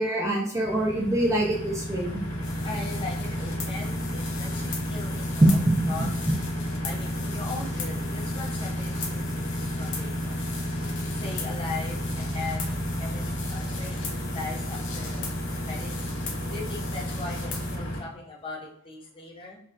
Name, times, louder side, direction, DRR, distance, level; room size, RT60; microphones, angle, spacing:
voice 1, 0.0-2.2 5.4-5.5 5.8-5.9, right 1 dB, 15° right, -2 dB, 0.5 m, -23 dB
sound 1, 0.6-18.0, equal, 90° left, 1.5 m, -32 dB
sound 2, 2.4-17.8, left 5 dB, 60° left, 0.8 m, -40 dB
voice 2, 2.6-5.6 5.9-6.1 6.8-10.5 11.1-14.0 14.3-15.3 15.7-16.1 16.5-19.6, left 3 dB, 25° left, -2 dB, 0.7 m, -39 dB
4.0 x 2.5 x 2.5 m, 0.69 s
head